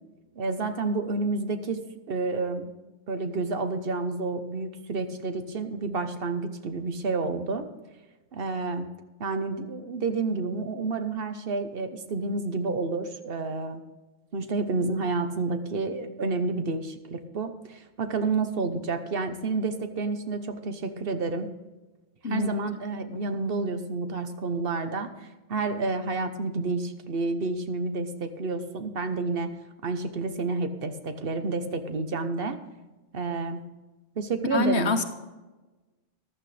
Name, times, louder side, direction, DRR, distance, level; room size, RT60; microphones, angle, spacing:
voice 1, 0.4-2.7 3.1-7.7 8.3-8.9 9.2-13.8 14.3-21.5 22.2-29.5 29.8-32.6 33.1-33.6 34.2-35.0, right 3 dB, 60° right, 8 dB, 1.2 m, -30 dB
voice 2, 34.5-35.0, left 4 dB, 80° left, 6 dB, 1.4 m, -26 dB
14.5 x 11.5 x 3.4 m, 1.2 s
omnidirectional pair, 1.1 m